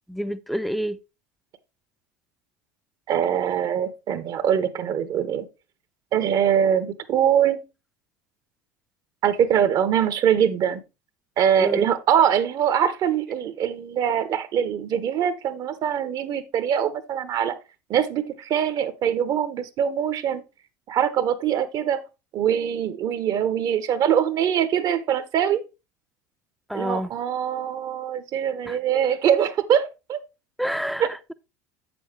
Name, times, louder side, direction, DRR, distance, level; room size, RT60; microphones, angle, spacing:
voice 1, 0.1-1.0 11.6-11.9 26.7-27.1 28.7-28.8 30.6-31.3, equal, ahead, 0.5 m, -28 dB
voice 2, 3.1-5.5 6.1-7.6 9.2-10.8 11.4-17.6 17.9-20.4 20.9-22.0 22.3-25.6 26.7-30.2 31.0-31.1, right 9 dB, 50° right, 0.8 m, -23 dB
7.8 x 6.9 x 3.2 m
hypercardioid pair, 75°, 9 cm